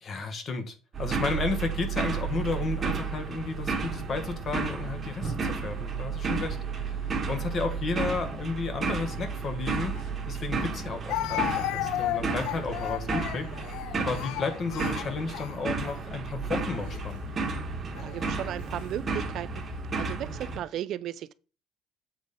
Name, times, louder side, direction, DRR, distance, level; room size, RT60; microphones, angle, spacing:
voice 1, 0.0-6.6 7.3-10.0 10.3-13.4 14.0-17.2, left 4 dB, 30° left, 1.2 m, -33 dB
sound 1, 0.9-20.6, right 4 dB, 25° right, 1.2 m, -32 dB
Speech, 10.0-10.1 11.1-16.0 16.7-17.0 18.0-18.5, left 15 dB, 65° left, 0.4 m, -34 dB
voice 2, 18.0-19.6 20.0-21.3, right 11 dB, 45° right, 0.3 m, -35 dB
7.9 x 4.0 x 5.1 m
cardioid pair, 165°, 0 cm